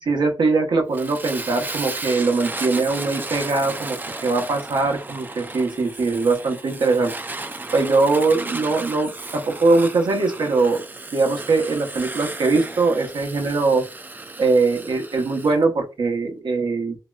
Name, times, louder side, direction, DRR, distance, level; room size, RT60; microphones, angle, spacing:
voice 1, 0.0-4.0 4.2-7.1 7.7-10.8 11.1-13.8 14.4-17.0, right 3 dB, 85° right, 3 dB, 0.8 m, -21 dB
Fire, 0.9-15.5, right 2 dB, 25° right, 0.3 m, -34 dB
3.1 x 2.8 x 2.3 m, 0.29 s
wide cardioid pair, 100°, 8 cm